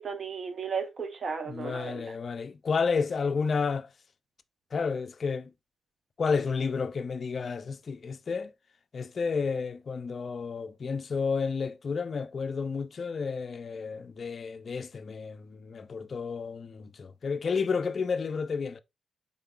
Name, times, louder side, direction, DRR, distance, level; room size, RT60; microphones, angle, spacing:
voice 1, 0.0-2.0, right 5 dB, 50° right, 0.9 m, -34 dB
voice 2, 1.5-3.9 4.7-5.5 6.2-8.5 8.9-18.8, left 5 dB, 50° left, 0.3 m, -31 dB
3.6 x 2.2 x 3.6 m
cardioid pair, 90°, 0 cm